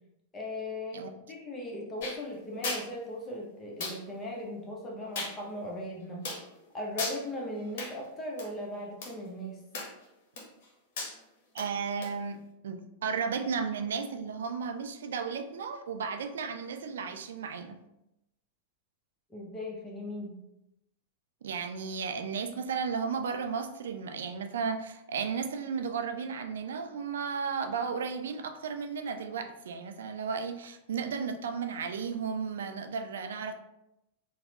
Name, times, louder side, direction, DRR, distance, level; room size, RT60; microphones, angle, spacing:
voice 1, 0.3-1.0 1.3-6.2 6.7-9.6 19.3-20.4, left 1 dB, 20° left, -2 dB, 0.8 m, -38 dB
sound 1, 2.0-2.2 2.6-2.8 3.8-4.0 5.2-5.3 6.2-6.4 7.0-7.2 7.8-7.9 8.4-8.5 9.0-9.1 9.7-10.0 10.4-10.7 11.0-11.1 11.6-11.7 12.0-12.1, left 3 dB, 55° left, 0.9 m, -35 dB
voice 2, 11.5-17.8 21.4-33.5, right 6 dB, 65° right, 7 dB, 0.3 m, -34 dB
4.0 x 2.1 x 2.7 m, 0.86 s
figure-of-eight pair, 90°, 0 cm